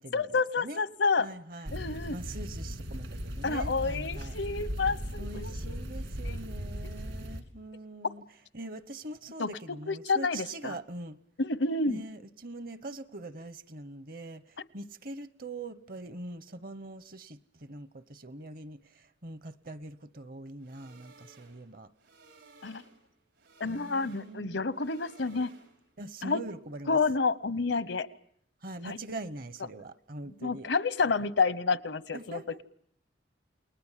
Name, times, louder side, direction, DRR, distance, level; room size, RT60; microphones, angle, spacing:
voice 1, 0.1-1.3 1.7-2.2 3.4-5.8 9.4-9.5 9.9-10.8 11.4-12.0 22.6-22.8 23.6-25.5 26.2-26.4 26.9-28.1 28.8-29.0 30.4-32.6, left 4 dB, 75° left, 0.9 m, -29 dB
voice 2, 1.2-1.7 2.1-4.3 5.2-8.2 8.5-11.2 11.9-21.9 23.6-24.6 26.0-27.0 28.6-30.7 32.1-32.6, right 2 dB, 50° right, 1.0 m, -43 dB
sound 1, 1.7-7.4, equal, 70° right, 2.9 m, -37 dB
sound 2, 20.6-26.0, right 3 dB, 85° right, 5.5 m, -58 dB
29.0 x 20.5 x 7.4 m
head